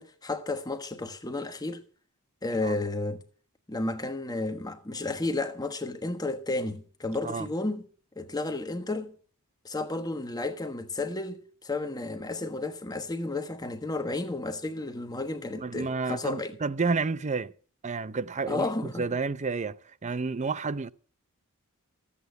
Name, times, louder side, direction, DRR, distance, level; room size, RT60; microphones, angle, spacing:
voice 1, 0.0-1.8 2.4-3.2 3.7-7.9 8.2-9.1 9.6-16.5 18.5-19.1, left 2 dB, 15° left, 1.3 m, -32 dB
voice 2, 15.6-17.5 17.8-19.8 20.0-20.9, right 4 dB, 30° right, 0.6 m, -30 dB
15.0 x 8.5 x 8.0 m
head